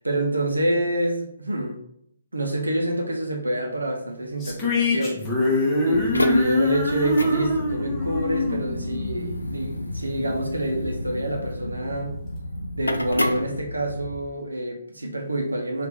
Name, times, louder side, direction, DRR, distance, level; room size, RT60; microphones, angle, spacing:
voice 1, 0.0-1.8 2.3-5.3 5.9-12.1 12.8-15.9, right 1 dB, 80° right, 1 dB, 0.6 m, -27 dB
sound 1, 4.4-9.8, left 2 dB, 15° left, 0.8 m, -24 dB
sound 2, 5.9-14.2, left 1 dB, 80° left, 0.4 m, -31 dB
2.9 x 2.4 x 3.4 m, 0.72 s
figure-of-eight pair, 135°, 0 cm